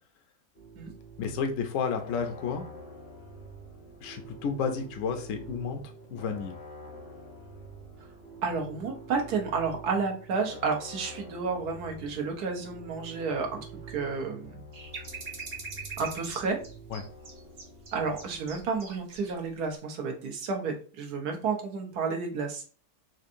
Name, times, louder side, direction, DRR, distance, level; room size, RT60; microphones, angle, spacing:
sound 1, 0.5-18.6, right 2 dB, 90° left, 1.7 m, -47 dB
voice 1, 1.2-2.6 4.0-5.8 6.1-6.5 16.9-17.0, left 6 dB, 70° left, 5 dB, 0.9 m, -31 dB
voice 2, 8.4-14.6 16.0-16.6 17.9-22.7, right 4 dB, 75° right, 3 dB, 1.3 m, -31 dB
sound 2, 14.7-19.3 19.6-19.8, right 4 dB, 45° right, 0.8 m, -42 dB
4.5 x 2.5 x 2.5 m, 0.39 s
omnidirectional pair, 1.7 m